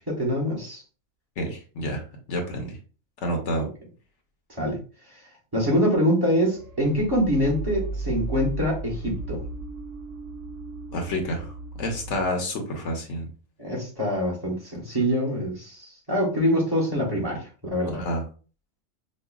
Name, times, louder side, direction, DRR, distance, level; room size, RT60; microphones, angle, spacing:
voice 1, 0.1-0.8 4.5-4.8 5.5-9.4 13.6-18.0, equal, 20° right, -2 dB, 1.1 m, -25 dB
voice 2, 1.4-2.0 2.3-2.8 3.2-3.7 10.9-13.3 17.8-18.2, equal, 65° left, 2 dB, 1.1 m, -29 dB
sound 1, 6.5-12.3, right 3 dB, 80° right, 1.0 m, -35 dB
5.2 x 2.3 x 2.3 m, 0.37 s
omnidirectional pair, 1.3 m